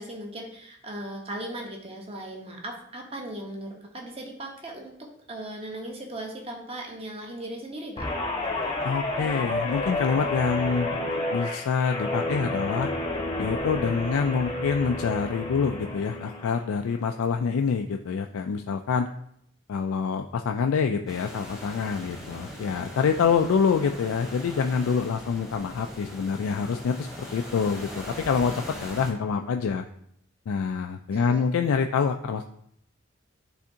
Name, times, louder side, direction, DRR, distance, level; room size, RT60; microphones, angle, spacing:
voice 1, 0.0-8.1 31.1-31.5, right 1 dB, 30° right, 1 dB, 1.0 m, -38 dB
Guitar, 8.0-16.6 16.9-17.3, left 2 dB, 20° left, 0.8 m, -30 dB
voice 2, 8.8-10.9 11.3-12.9 13.4-19.1 19.7-29.8 30.5-32.5, left 6 dB, 90° left, 5 dB, 0.3 m, -26 dB
sound 1, 21.1-29.1, equal, 5° right, 1.1 m, -41 dB
10.0 x 3.5 x 2.8 m, 0.70 s
head